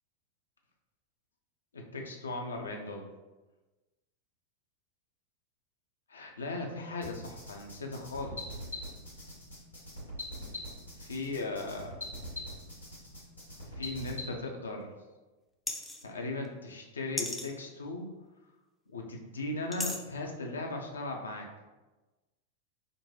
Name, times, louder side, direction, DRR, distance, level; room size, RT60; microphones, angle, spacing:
voice 1, 1.7-3.1 6.1-8.6 11.0-12.0 13.7-14.9 16.0-18.1 18.9-21.6, left 2 dB, 70° left, 2 dB, 0.5 m, -38 dB
sound 1, 7.0-14.3, left 1 dB, 85° left, 1.3 m, -42 dB
sound 2, 15.7-16.1 17.2-17.5 19.7-20.0, left 2 dB, 10° left, 0.4 m, -35 dB
3.8 x 2.2 x 2.7 m, 1.1 s
figure-of-eight pair, 90°, 0 cm